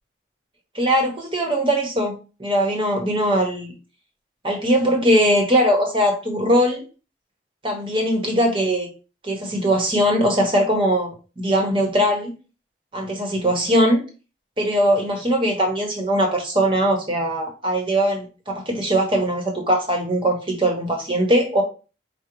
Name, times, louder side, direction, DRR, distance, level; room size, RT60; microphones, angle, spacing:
voice 1, 0.7-3.7 4.4-6.8 7.6-8.9 9.2-12.3 12.9-14.0 14.6-21.6, equal, 30° right, 2 dB, 1.1 m, -20 dB
4.9 x 2.3 x 4.5 m, 0.33 s
head